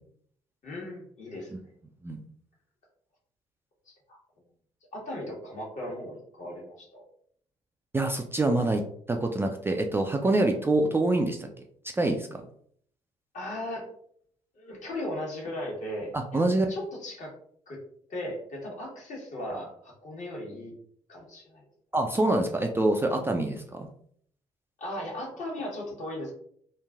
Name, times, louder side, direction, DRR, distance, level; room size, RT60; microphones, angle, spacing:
voice 1, 0.6-1.6 3.9-4.2 4.9-7.0 13.3-13.9 14.5-16.4 16.7-17.3 17.7-17.8 18.1-20.7 21.1-21.6 24.8-26.3, left 1 dB, 50° left, -2 dB, 1.2 m, -37 dB
voice 2, 7.9-11.5 11.9-12.4 16.1-16.7 21.9-23.9, right 2 dB, 15° right, 3 dB, 0.3 m, -26 dB
3.0 x 2.5 x 2.3 m, 0.63 s
hypercardioid pair, 45°, 16 cm